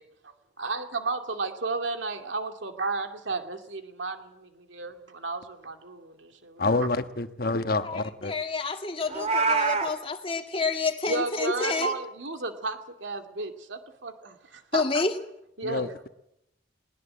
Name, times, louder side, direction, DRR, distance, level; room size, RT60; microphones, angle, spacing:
voice 1, 0.6-6.6 11.1-15.0 15.6-15.9, right 3 dB, 80° right, 6 dB, 2.5 m, -33 dB
voice 2, 6.6-8.3 15.6-16.1, left 3 dB, 50° left, 9 dB, 1.3 m, -28 dB
voice 3, 8.2-11.9 14.7-15.1, left 4 dB, 30° left, 5 dB, 2.1 m, -29 dB
Meow, 9.1-9.9, right 4 dB, 35° right, 2.3 m, -24 dB
20.5 x 20.0 x 7.9 m, 0.80 s
head